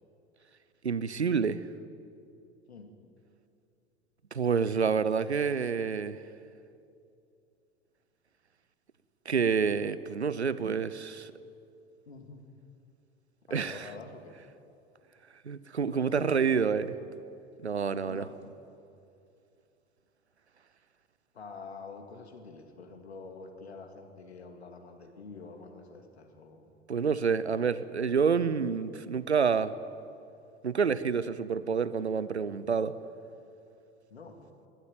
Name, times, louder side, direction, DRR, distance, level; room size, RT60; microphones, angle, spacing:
voice 1, 0.8-1.6 4.3-6.2 9.3-11.3 13.5-13.8 15.4-16.9 17.6-18.2 26.9-29.8 30.6-32.9, right 6 dB, 85° right, 16 dB, 0.7 m, -28 dB
voice 2, 12.1-12.4 13.5-14.4 15.9-17.0 18.0-18.3 21.3-26.7 34.1-34.4, left 4 dB, 75° left, 4 dB, 2.4 m, -47 dB
21.0 x 13.5 x 9.1 m, 2.6 s
figure-of-eight pair, 80°, 32 cm